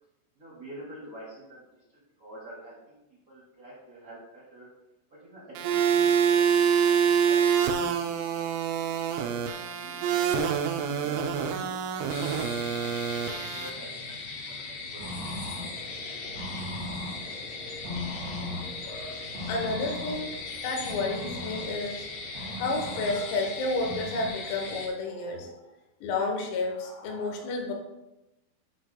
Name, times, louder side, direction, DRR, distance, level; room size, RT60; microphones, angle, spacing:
voice 1, 0.3-2.9 3.3-4.7 5.1-7.4 9.2-10.0 10.5-12.9 13.2-14.1 14.6-15.0, right 1 dB, 30° right, -8 dB, 1.6 m, -47 dB
sound 1, 5.6-13.7, right 7 dB, 90° right, 2.5 m, -26 dB
sound 2, 12.1-24.9, left 4 dB, 70° left, 2.9 m, -39 dB
sound 3, 15.0-24.3, left 1 dB, 65° right, 3.7 m, -39 dB
voice 2, 18.9-20.3 20.6-22.1 22.4-25.6 26.0-27.7, left 3 dB, 85° left, 2 dB, 4.0 m, -31 dB
12.0 x 6.3 x 2.3 m, 0.93 s
omnidirectional pair, 5.9 m